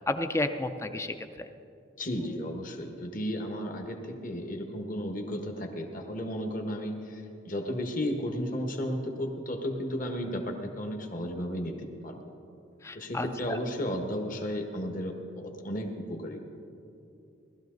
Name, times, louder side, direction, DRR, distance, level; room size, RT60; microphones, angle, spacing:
voice 1, 0.1-1.5 12.8-13.6, left 2 dB, 15° left, 8 dB, 0.5 m, -32 dB
voice 2, 2.0-12.2 12.9-16.4, equal, 45° left, 3 dB, 1.5 m, -34 dB
18.5 x 13.0 x 4.0 m, 2.6 s
head